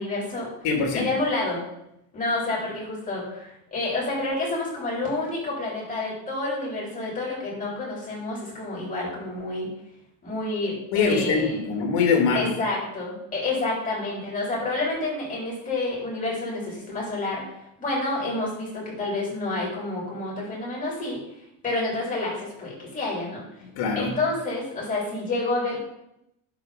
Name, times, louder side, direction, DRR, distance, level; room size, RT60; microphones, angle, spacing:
voice 1, 0.0-0.5 0.9-1.6 2.1-9.7 10.2-11.7 12.3-17.4 17.8-21.2 21.6-23.4 24.0-25.8, left 2 dB, 20° left, -5 dB, 3.8 m, -29 dB
voice 2, 0.6-1.1 10.9-12.5 23.6-24.2, left 5 dB, 80° left, 3 dB, 2.3 m, -23 dB
11.0 x 4.3 x 5.1 m, 0.82 s
cardioid pair, 155°, 36 cm